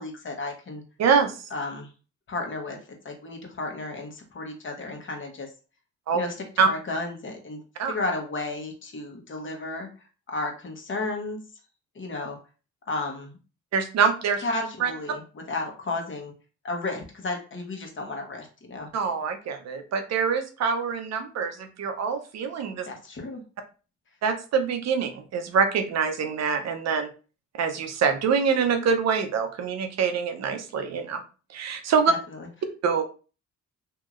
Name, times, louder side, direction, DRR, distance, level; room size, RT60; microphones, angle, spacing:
voice 1, 0.0-0.8 1.5-1.9 2.3-2.8 3.0-5.5 6.1-6.3 6.7-7.6 7.9-9.9 10.3-11.4 11.9-12.4 12.9-13.4 14.4-16.3 16.6-18.9 22.8-23.4 32.1-32.2, left 2 dB, 40° left, 2 dB, 1.0 m, -33 dB
voice 2, 1.0-1.5 6.1-6.2 6.6-6.7 7.8-7.9 13.7-14.4 14.8-14.9 18.9-22.9 24.2-27.1 27.5-31.2 31.5-32.1 32.8-33.0, right 6 dB, 60° right, 7 dB, 0.7 m, -25 dB
2.9 x 2.8 x 2.5 m, 0.35 s
cardioid pair, 90°, 30 cm